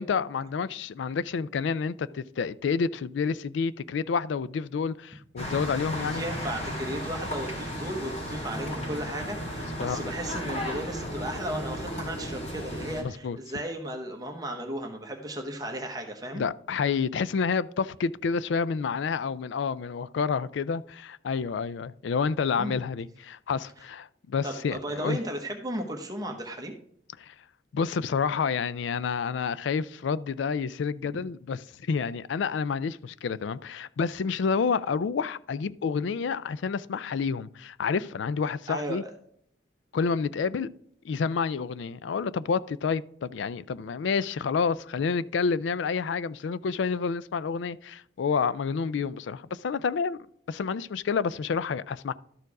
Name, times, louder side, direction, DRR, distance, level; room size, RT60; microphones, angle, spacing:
voice 1, 0.0-6.2 9.8-10.0 13.0-13.4 16.3-25.2 27.2-27.3 27.7-39.0 39.9-40.7 41.0-50.2 50.5-52.1, left 5 dB, 80° left, 0.4 m, -29 dB
sound 1, 5.4-13.0, equal, 35° left, 2.0 m, -34 dB
voice 2, 5.9-16.4 22.6-22.7 24.4-26.7 38.7-39.0, right 1 dB, 20° right, 0.9 m, -35 dB
12.5 x 4.5 x 4.7 m
head